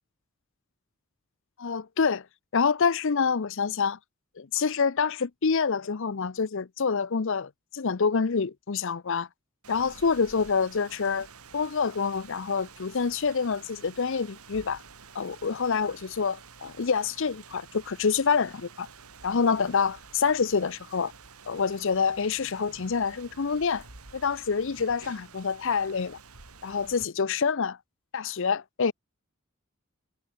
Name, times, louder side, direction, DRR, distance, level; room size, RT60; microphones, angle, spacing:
voice 1, 1.6-2.3 2.5-4.0 4.4-9.3 9.7-11.3 11.5-14.8 15.1-18.9 19.2-21.1 21.5-23.8 24.1-26.2 26.6-27.8 28.1-28.9, left 5 dB, 60° left, 0.6 m, -27 dB
Rain, 9.6-27.0, right 5 dB, 80° right, 3.2 m, -50 dB
head